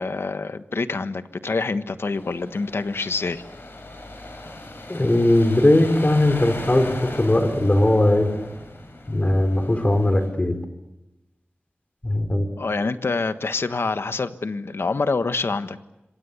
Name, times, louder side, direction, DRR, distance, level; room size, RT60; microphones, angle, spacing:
voice 1, 0.0-3.4 12.6-15.8, left 3 dB, 80° left, 10 dB, 1.3 m, -26 dB
sound 1, 2.1-10.3, left 2 dB, 65° left, 7.0 m, -38 dB
voice 2, 4.9-8.4 9.1-10.6 12.0-12.5, left 1 dB, 35° left, 8 dB, 4.2 m, -19 dB
27.0 x 25.5 x 8.3 m, 0.99 s
wide cardioid pair, 60°, 4 cm